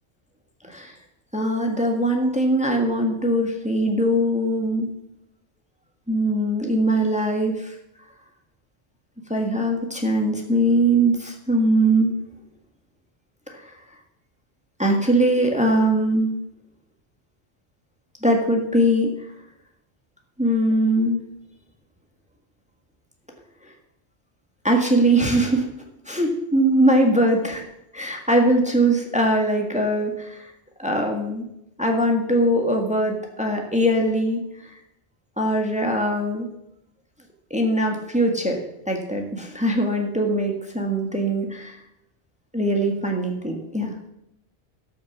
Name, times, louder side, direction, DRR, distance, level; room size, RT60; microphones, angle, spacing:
voice 1, 0.6-0.9 1.3-4.9 6.1-7.7 9.3-12.1 13.5-13.8 14.8-16.3 18.2-19.3 20.4-21.2 23.6-23.7 24.6-25.7 26.0-27.6 27.9-30.5 30.8-31.4 31.8-34.7 35.4-36.5 37.5-41.8 42.5-44.0, right 1 dB, 5° right, 2 dB, 1.6 m, -21 dB
12.5 x 6.7 x 7.1 m, 0.82 s
omnidirectional pair, 1.1 m